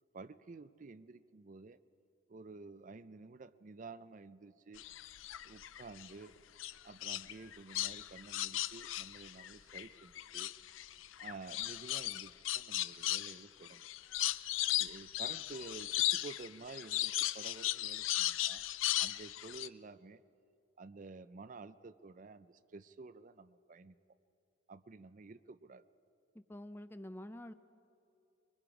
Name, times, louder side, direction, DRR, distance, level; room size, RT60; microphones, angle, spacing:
voice 1, 0.1-1.8 2.3-4.8 5.4-6.3 6.8-10.5 11.2-13.9 14.8-18.6 19.0-20.2 20.8-23.9 24.7-25.8, right 3 dB, 40° right, 14 dB, 0.5 m, -51 dB
sound 1, 4.8-6.1 6.6-9.9 10.2-19.7, left 15 dB, 80° left, 0.5 m, -36 dB
voice 2, 26.3-27.5, left 1 dB, 10° left, 12 dB, 0.5 m, -47 dB
25.0 x 23.0 x 5.0 m, 2.7 s
head